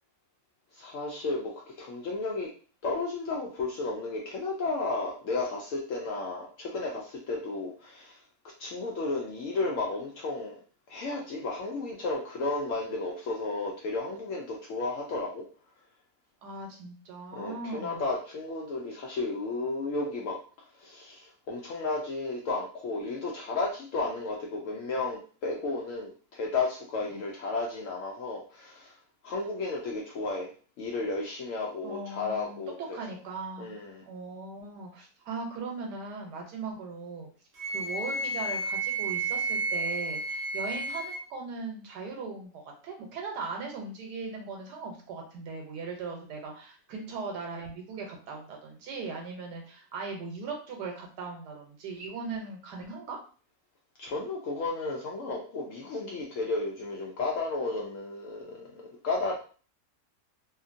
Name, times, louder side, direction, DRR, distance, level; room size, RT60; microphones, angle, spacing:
voice 1, 0.7-2.5 2.8-8.2 8.4-10.6 10.9-15.4 17.3-29.0 29.2-30.5 30.8-33.0 33.6-34.0 54.0-59.3, left 3 dB, 70° left, -1 dB, 0.7 m, -33 dB
voice 2, 16.4-18.0 27.1-27.2 31.8-32.6 32.9-33.7 34.1-37.3 37.7-53.2, right 4 dB, 80° right, 1 dB, 1.2 m, -39 dB
Wind instrument woodwind instrument, 37.6-41.2, right 2 dB, 50° right, 0.8 m, -31 dB
2.8 x 2.5 x 2.5 m, 0.40 s
omnidirectional pair, 1.8 m